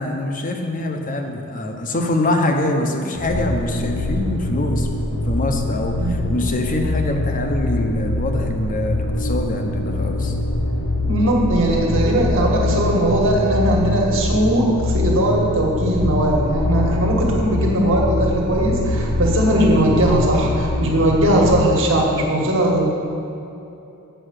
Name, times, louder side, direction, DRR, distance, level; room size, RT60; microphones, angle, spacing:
voice 1, 0.0-10.3, left 1 dB, 40° left, 4 dB, 0.8 m, -24 dB
sound 1, 3.1-21.6, left 2 dB, 80° left, 1.0 m, -23 dB
voice 2, 6.0-6.3 10.9-22.9, right 1 dB, 60° right, -2 dB, 1.6 m, -19 dB
7.9 x 5.5 x 6.5 m, 2.9 s
head